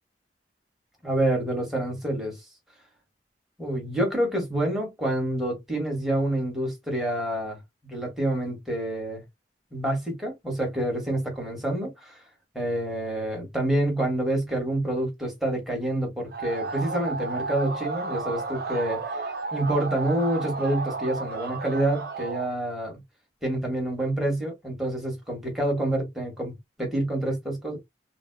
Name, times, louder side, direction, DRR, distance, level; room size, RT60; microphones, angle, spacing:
voice 1, 1.0-2.4 3.6-9.2 9.7-12.2 12.5-19.2 19.5-23.0 23.4-27.8, right 1 dB, ahead, 1.7 m, -27 dB
sound 1, 16.3-22.5, right 4 dB, 55° right, 0.8 m, -32 dB
4.0 x 2.6 x 2.3 m
head